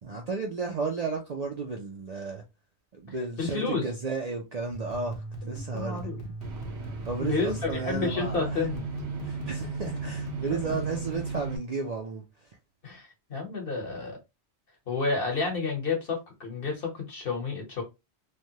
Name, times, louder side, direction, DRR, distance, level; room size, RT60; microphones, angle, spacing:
voice 1, 0.0-2.4 2.9-6.3 7.1-8.7 9.2-12.2, right 4 dB, 50° right, 0.5 m, -33 dB
voice 2, 3.4-3.9 5.4-6.2 7.2-8.8 10.5-10.8 12.8-14.2 14.9-17.8, left 4 dB, 55° left, 1.3 m, -30 dB
sound 1, 4.7-11.6, right 3 dB, 40° left, 0.9 m, -36 dB
sound 2, 6.4-11.6, right 4 dB, 70° right, 0.9 m, -42 dB
3.2 x 2.2 x 2.8 m
omnidirectional pair, 1.2 m